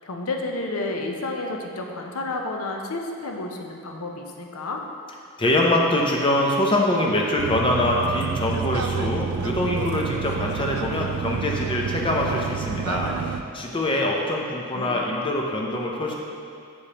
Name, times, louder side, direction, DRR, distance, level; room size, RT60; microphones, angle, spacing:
voice 1, 0.0-4.8 14.7-15.0, left 2 dB, 70° left, 2 dB, 0.6 m, -31 dB
voice 2, 5.4-16.1, left 1 dB, 25° left, -1 dB, 0.6 m, -24 dB
sound 1, 7.4-13.4, right 6 dB, 65° right, 0.3 m, -29 dB
7.0 x 4.9 x 2.9 m, 2.4 s
head